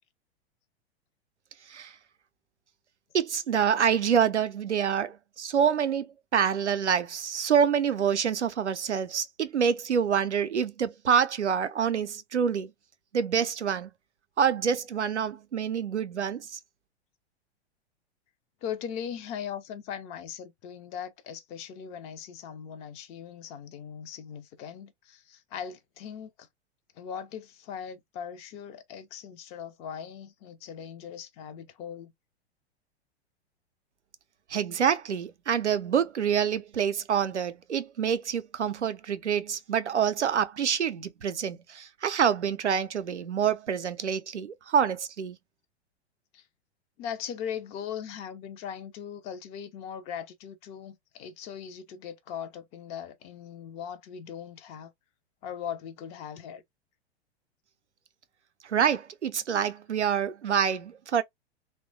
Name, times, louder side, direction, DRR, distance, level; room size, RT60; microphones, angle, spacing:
voice 1, 3.1-12.7 13.1-13.9 14.4-16.6 34.5-45.4 58.6-61.2, right 7 dB, 85° right, 0.5 m, -27 dB
voice 2, 18.6-26.5 27.0-32.1 46.3-46.4 47.0-54.9 55.4-56.6, left 8 dB, 20° left, 0.3 m, -39 dB
2.9 x 2.2 x 2.5 m
figure-of-eight pair, 100°, 34 cm